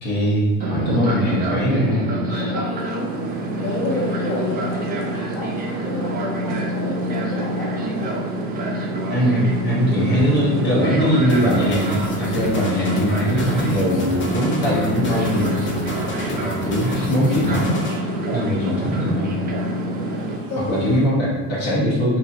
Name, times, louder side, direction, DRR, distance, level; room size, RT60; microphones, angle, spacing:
voice 1, 0.0-2.5 9.1-15.6 16.6-17.8 18.3-19.3 20.7-22.2, equal, 80° left, -7 dB, 1.1 m, -21 dB
Fixed-wing aircraft airplane, 0.6-20.4, equal, 25° right, 0.3 m, -26 dB
voice 2, 2.4-3.2 3.6-8.2 16.6-17.2 18.4-18.9 20.5-21.2, left 1 dB, 45° left, -6 dB, 1.1 m, -30 dB
sound 1, 2.8-21.1, right 2 dB, 90° right, 0.6 m, -38 dB
sound 2, 11.3-18.0, left 1 dB, 25° left, 0.6 m, -31 dB
2.7 x 2.5 x 2.3 m, 1.3 s
hypercardioid pair, 75°, 45 cm